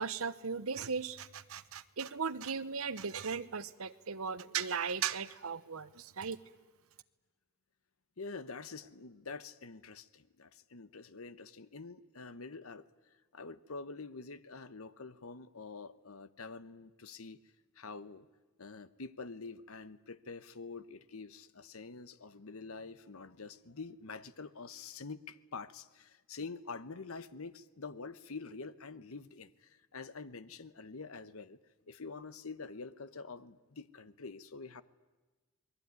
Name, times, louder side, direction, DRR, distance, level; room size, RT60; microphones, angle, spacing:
voice 1, 0.0-6.4, right 6 dB, 75° right, 13 dB, 1.0 m, -37 dB
voice 2, 8.2-12.9 13.3-17.4 17.8-18.3 18.6-31.6 31.9-34.8, left 4 dB, 75° left, 14 dB, 1.0 m, -46 dB
27.5 x 21.0 x 9.6 m, 1.2 s
head